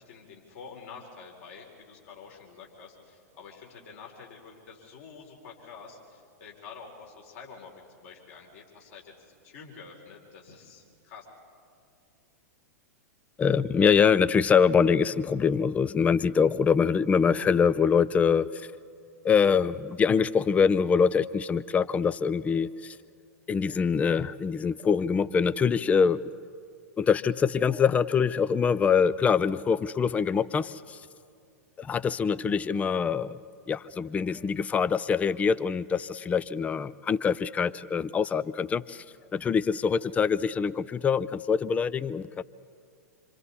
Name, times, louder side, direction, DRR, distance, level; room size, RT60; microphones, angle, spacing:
voice 1, 0.0-11.2, left 5 dB, 55° left, 0 dB, 4.3 m, -48 dB
voice 2, 13.4-18.7 19.2-23.0 23.5-26.2 27.0-31.0 31.8-33.4 33.7-39.0 39.3-42.4, left 6 dB, 15° left, 17 dB, 0.5 m, -24 dB
27.0 x 26.0 x 4.2 m, 2.3 s
figure-of-eight pair, 100°, 9 cm